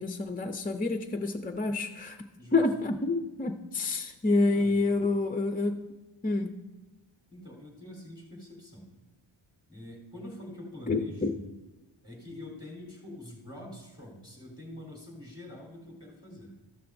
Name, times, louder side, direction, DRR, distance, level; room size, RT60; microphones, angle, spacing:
voice 1, 0.0-2.2 2.5-5.8 6.2-6.5 10.9-11.3, left 3 dB, 20° left, 6 dB, 0.4 m, -28 dB
voice 2, 4.4-4.9 7.3-8.9 9.7-11.5 12.0-16.6, left 1 dB, 10° right, -3 dB, 3.7 m, -45 dB
13.5 x 12.5 x 2.6 m, 1.1 s
wide cardioid pair, 135°, 48 cm